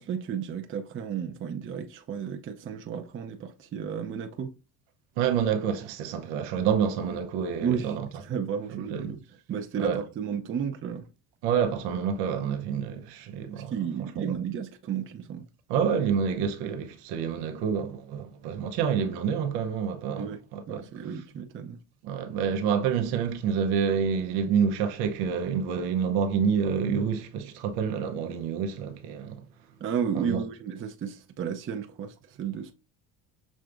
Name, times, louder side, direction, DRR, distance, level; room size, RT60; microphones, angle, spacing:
voice 1, 0.0-4.5 7.6-9.2 9.5-11.1 13.5-15.5 20.2-20.4 20.7-21.8 29.8-32.7, right 7 dB, 35° right, 0.6 m, -33 dB
voice 2, 5.2-8.1 8.7-9.1 9.8-10.0 11.4-13.7 14.2-14.3 15.7-20.9 22.0-29.4 30.1-30.4, right 7 dB, 90° right, 0.8 m, -28 dB
6.2 x 3.3 x 2.5 m
cardioid pair, 115°, 37 cm